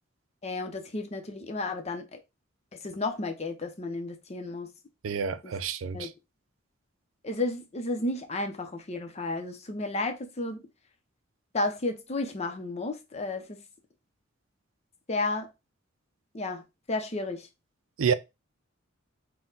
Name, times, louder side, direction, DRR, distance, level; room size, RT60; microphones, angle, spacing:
voice 1, 0.4-2.2 2.8-4.7 5.4-5.5 5.9-6.1 7.2-10.6 11.5-13.6 15.1-15.5 16.3-16.6 16.9-17.5, left 2 dB, 35° left, 0.7 m, -32 dB
voice 2, 5.0-6.1 18.0-18.1, right 6 dB, 85° right, 0.4 m, -28 dB
4.3 x 2.2 x 3.8 m
head